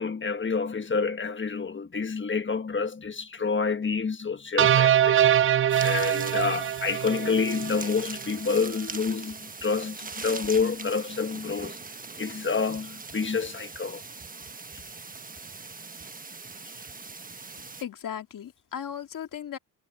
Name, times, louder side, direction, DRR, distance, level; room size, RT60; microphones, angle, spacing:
voice 1, 0.0-11.8 12.2-14.0, left 5 dB, 35° left, 1.4 m, -28 dB
sound 1, 4.6-7.9, right 10 dB, 40° right, 0.4 m, -23 dB
sound 2, 5.7-17.8, right 4 dB, 25° right, 1.3 m, -41 dB
voice 2, 17.8-19.6, left 9 dB, 65° left, 2.4 m, -36 dB
cardioid pair, 75°, 34 cm